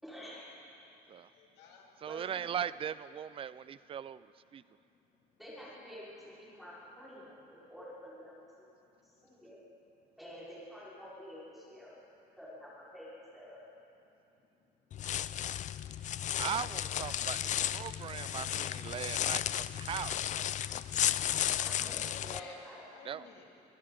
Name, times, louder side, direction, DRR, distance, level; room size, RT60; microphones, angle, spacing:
voice 1, 0.0-0.4 2.1-2.5 5.4-8.7 9.0-9.6 10.2-11.9 12.4-13.6 21.6-22.8, equal, ahead, -10 dB, 4.6 m, -49 dB
voice 2, 1.3-2.0 21.2-23.5, left 4 dB, 90° left, 0 dB, 2.5 m, -52 dB
voice 3, 2.0-4.2 4.5-4.6 16.4-20.1 23.1-23.2, right 9 dB, 35° right, 17 dB, 0.4 m, -39 dB
sound 1, 14.9-22.4, left 11 dB, 45° left, 0.4 m, -34 dB
23.5 x 14.5 x 3.9 m, 2.8 s
cardioid pair, 110°, 17 cm